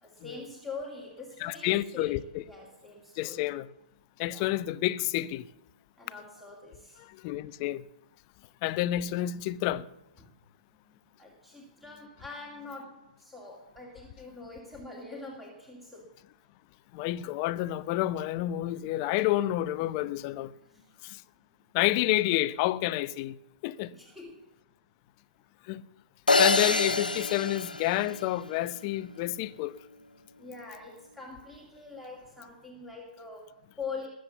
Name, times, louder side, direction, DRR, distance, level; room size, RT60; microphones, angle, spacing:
voice 1, 0.0-2.2 2.4-3.5 4.3-4.6 6.0-7.0 10.2-10.3 10.7-16.0 20.6-20.9 23.9-24.5 30.4-34.1, left 4 dB, ahead, 2.6 m, -44 dB
voice 2, 1.4-2.4 3.2-3.7 4.2-5.5 7.0-7.8 8.6-9.9 16.9-20.5 21.0-21.2 21.7-23.4 23.6-23.9 25.7-25.8 26.4-29.8, left 15 dB, 35° left, 0.7 m, -29 dB
sound 1, 26.3-28.6, left 3 dB, 90° left, 1.1 m, -26 dB
20.5 x 7.8 x 7.0 m
figure-of-eight pair, 125°, 4 cm